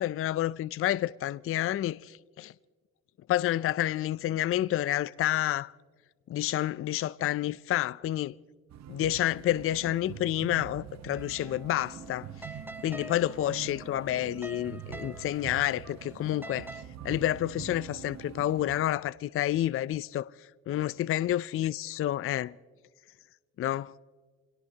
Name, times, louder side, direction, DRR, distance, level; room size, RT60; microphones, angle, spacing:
voice 1, 0.0-2.5 3.3-5.7 6.3-8.3 8.9-12.3 12.8-16.7 17.0-20.3 20.7-22.5 23.6-23.9, left 13 dB, 45° left, 0.4 m, -29 dB
sound 1, 8.7-18.8, right 10 dB, 65° right, 1.0 m, -45 dB
sound 2, 11.1-16.8, right 1 dB, 5° right, 0.8 m, -47 dB
27.0 x 17.5 x 2.8 m
cardioid pair, 90°, 30 cm